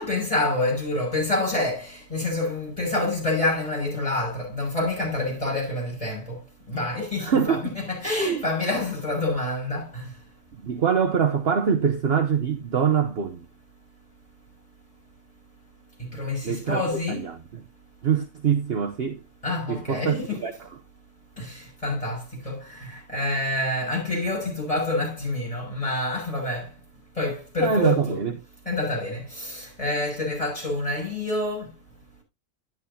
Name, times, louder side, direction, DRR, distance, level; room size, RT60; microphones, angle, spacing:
voice 1, 0.0-6.4 6.7-7.6 7.9-10.1 16.0-17.4 19.4-20.4 21.4-26.7 27.2-28.2 28.6-31.7, left 2 dB, 20° left, 6.6 m, -27 dB
voice 2, 7.2-7.8 8.2-8.4 10.6-13.5 16.4-17.6 18.0-19.2 19.7-20.8 27.6-28.4, right 7 dB, 50° right, 0.9 m, -24 dB
11.0 x 11.0 x 2.7 m
omnidirectional pair, 1.5 m